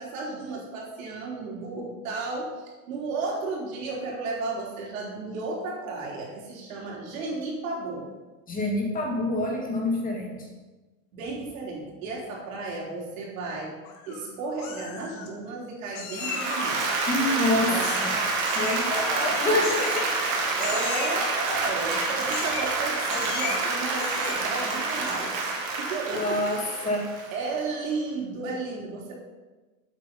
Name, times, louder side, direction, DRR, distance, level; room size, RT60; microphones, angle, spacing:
voice 1, 0.0-8.1 11.1-13.7 14.1-16.8 17.6-18.0 19.3-19.4 20.6-25.5 25.8-26.9 27.3-29.1, right 3 dB, 80° right, -3 dB, 3.6 m, -33 dB
voice 2, 8.5-10.5 17.1-17.8 18.0-18.2 18.5-20.6 26.1-27.1, left 1 dB, 20° left, 0 dB, 1.8 m, -27 dB
Meow, 13.8-14.3 14.6-15.3 15.9-16.8 17.8-18.2 18.4-18.9 19.6-20.3 20.6-21.3 22.2-22.8 23.1-23.6 24.0-24.6 25.0-25.4, left 5 dB, 45° left, 1.7 m, -36 dB
Applause, 16.2-27.5, right 3 dB, 50° right, 2.2 m, -28 dB
8.3 x 8.0 x 5.3 m, 1.2 s
supercardioid pair, 150°, 40 cm